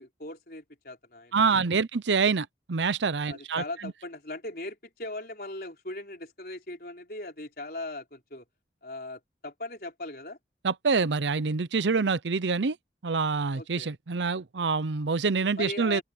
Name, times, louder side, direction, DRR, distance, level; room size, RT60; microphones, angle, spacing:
voice 1, 0.0-1.6 3.3-8.4 8.8-10.4 13.5-13.9 15.6-16.0, left 2 dB, 55° left, 4.7 m, -39 dB
voice 2, 1.3-3.6 10.6-12.8 13.0-16.0, right 4 dB, 90° right, 0.7 m, -26 dB
open air
head